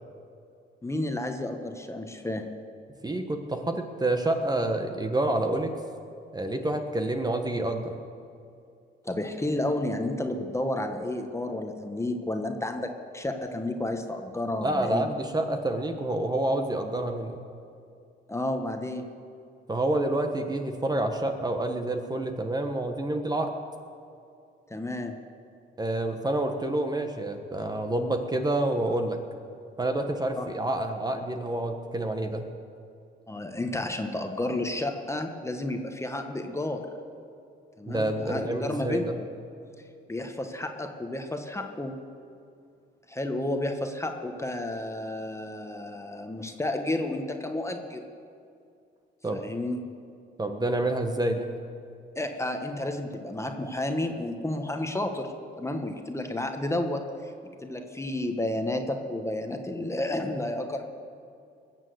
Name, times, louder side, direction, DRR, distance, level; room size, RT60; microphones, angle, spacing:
voice 1, 0.8-2.5 9.0-15.1 18.3-19.0 24.7-25.2 30.4-30.5 33.3-36.9 37.8-39.3 40.1-41.9 43.1-48.0 49.3-49.8 52.1-57.3 57.6-60.8, left 1 dB, 15° left, 5 dB, 1.3 m, -31 dB
voice 2, 3.0-5.7 6.3-7.9 14.6-17.4 19.7-23.5 25.8-29.2 29.8-32.5 37.9-39.2 49.2-49.4 50.4-51.5, right 1 dB, 20° right, 5 dB, 1.3 m, -28 dB
20.5 x 7.5 x 7.9 m, 2.4 s
cardioid pair, 90°, 20 cm